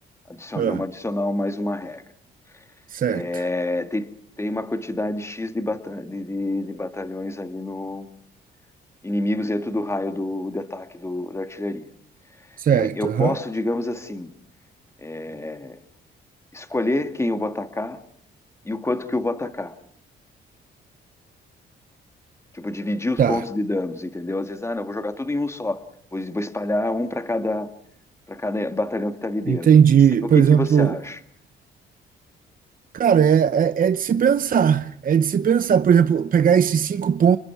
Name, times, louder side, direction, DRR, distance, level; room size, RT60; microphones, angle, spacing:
voice 1, 0.3-2.0 3.1-4.1 4.4-8.1 9.0-11.9 12.7-14.3 15.0-15.8 16.5-18.0 18.6-19.7 22.5-25.8 26.1-27.7 28.3-29.7 30.2-31.2, left 2 dB, 15° left, 2.2 m, -27 dB
voice 2, 2.9-3.4 12.6-13.3 23.2-23.4 29.5-31.0 32.9-37.4, right 8 dB, 45° right, 0.8 m, -18 dB
30.0 x 21.0 x 4.7 m
cardioid pair, 90°, 20 cm